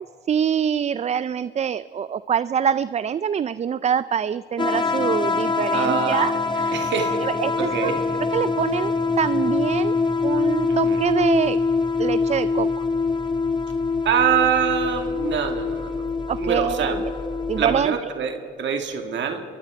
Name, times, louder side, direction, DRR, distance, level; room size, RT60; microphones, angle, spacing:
voice 1, 0.3-6.8 7.2-8.0 8.3-11.6 12.0-12.9 16.3-16.9 17.5-18.1, right 8 dB, 35° right, 16 dB, 0.4 m, -25 dB
sound 1, 4.6-17.8, left 4 dB, 25° left, 1.7 m, -24 dB
voice 2, 5.7-6.2 6.7-7.3 7.6-8.0 10.7-11.0 14.0-16.0 16.4-17.0 17.6-19.4, right 7 dB, 65° right, 5 dB, 1.7 m, -24 dB
28.5 x 22.5 x 4.7 m, 2.8 s
cardioid pair, 90°, 20 cm